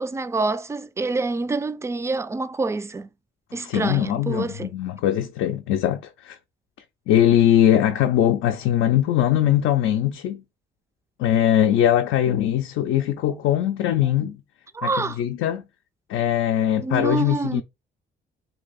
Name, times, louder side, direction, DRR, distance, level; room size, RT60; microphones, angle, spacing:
voice 1, 0.0-3.1 3.5-4.7 14.7-15.2 16.8-17.6, right 3 dB, 15° right, 0.3 m, -26 dB
voice 2, 3.5-6.4 7.1-10.4 11.2-14.4 14.8-15.6 16.1-17.6, left 11 dB, 90° left, 0.4 m, -21 dB
2.8 x 2.6 x 3.9 m
cardioid pair, 90°, 20 cm